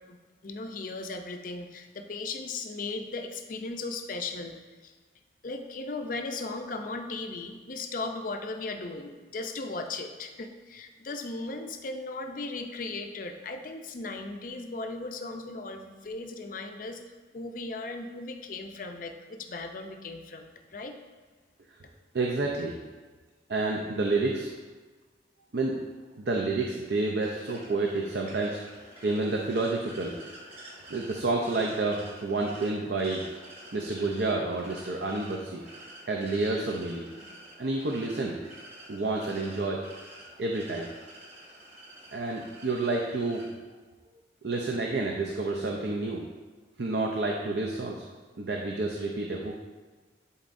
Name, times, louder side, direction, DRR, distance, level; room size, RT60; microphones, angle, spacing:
voice 1, 0.4-4.6 4.8-4.9 5.4-17.0 17.3-21.0, left 3 dB, 45° left, 5 dB, 0.5 m, -37 dB
voice 2, 22.1-22.8 23.5-24.5 25.5-25.8 26.2-28.6 29.0-30.2 30.9-33.2 33.7-35.6 36.1-37.1 37.6-38.4 38.9-39.8 40.4-40.9 42.1-43.4 44.4-46.2 46.8-48.1 48.4-49.6, right 2 dB, 60° right, 0 dB, 0.5 m, -29 dB
sound 1, 27.2-43.5, right 1 dB, 35° right, 1.5 m, -49 dB
11.0 x 4.1 x 2.6 m, 1.4 s
head